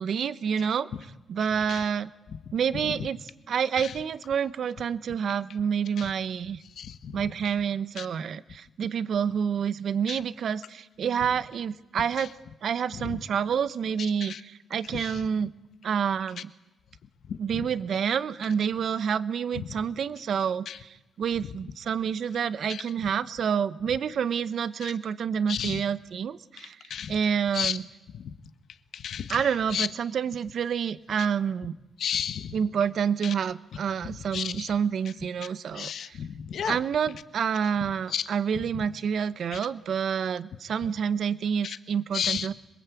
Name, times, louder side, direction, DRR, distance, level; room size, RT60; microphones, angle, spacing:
voice 1, 0.0-2.1 2.5-6.6 7.1-12.3 12.6-15.5 15.8-16.5 17.4-27.9 29.3-31.7 32.5-36.2 36.6-42.5, right 7 dB, 65° right, 15 dB, 1.0 m, -28 dB
voice 2, 6.8-7.2 8.0-8.1 10.1-10.2 13.0-13.2 14.2-14.4 14.9-15.2 17.3-17.6 20.7-20.8 22.7-22.8 24.8-24.9 25.5-25.8 26.9-27.2 27.5-27.8 28.1-28.3 28.9-29.4 29.7-29.9 32.0-32.5 33.2-33.3 34.3-34.7 35.7-36.8 38.1-38.3 39.5-39.6 41.6-41.8 42.1-42.5, left 8 dB, 70° left, 11 dB, 1.4 m, -32 dB
26.5 x 22.0 x 8.4 m, 1.0 s
cardioid pair, 100°, 0 cm